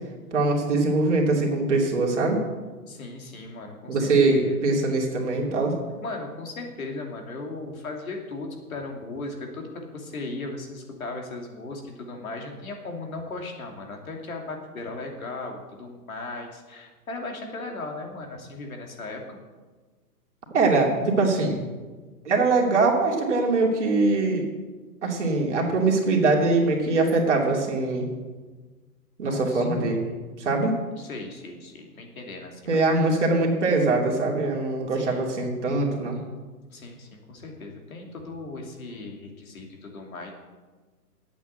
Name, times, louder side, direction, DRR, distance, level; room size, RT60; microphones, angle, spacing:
voice 1, 0.3-2.4 3.9-5.7 20.5-21.6 22.2-24.4 25.0-28.1 29.2-30.1 30.4-30.7 32.7-36.2, right 3 dB, 45° right, 0 dB, 2.7 m, -22 dB
voice 2, 2.9-4.7 6.0-19.2 29.2-29.7 31.0-32.8 34.9-35.3 36.7-40.3, left 2 dB, 60° left, 2 dB, 2.8 m, -37 dB
10.0 x 8.4 x 8.0 m, 1.3 s
hypercardioid pair, 175°, 48 cm